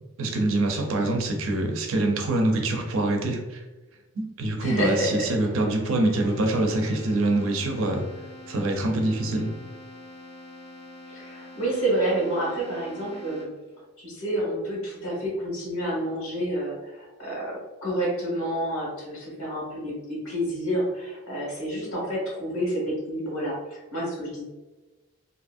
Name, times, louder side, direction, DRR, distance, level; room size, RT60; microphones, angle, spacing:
voice 1, 0.2-3.6 4.1-8.1 8.5-9.5, right 2 dB, 70° right, 2 dB, 0.5 m, -25 dB
voice 2, 4.6-5.3 11.1-13.5 14.0-24.4, right 1 dB, 90° left, -4 dB, 1.3 m, -29 dB
Keyboard (musical), 4.8-13.8, left 2 dB, 50° left, 0.6 m, -45 dB
2.8 x 2.5 x 2.4 m, 1.1 s
head